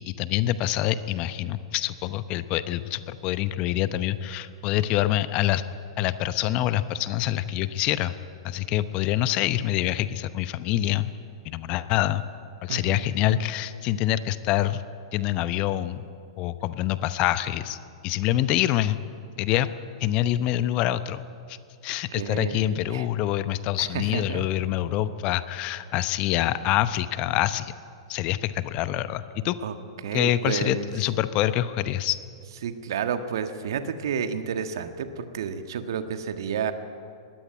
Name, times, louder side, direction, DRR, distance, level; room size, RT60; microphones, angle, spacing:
voice 1, 0.0-5.6 6.0-8.1 8.4-11.1 11.4-12.2 12.6-14.8 15.1-16.1 16.4-17.8 18.0-19.0 19.4-19.7 20.0-21.2 21.5-21.6 21.8-27.7 28.1-29.6 30.1-32.2, left 13 dB, 40° left, 13 dB, 0.9 m, -26 dB
voice 2, 12.7-13.2 22.1-23.1 23.8-24.5 29.6-31.1 32.6-36.7, right 7 dB, 65° right, 8 dB, 1.6 m, -31 dB
20.5 x 15.0 x 9.4 m, 2.4 s
figure-of-eight pair, 105°, 2 cm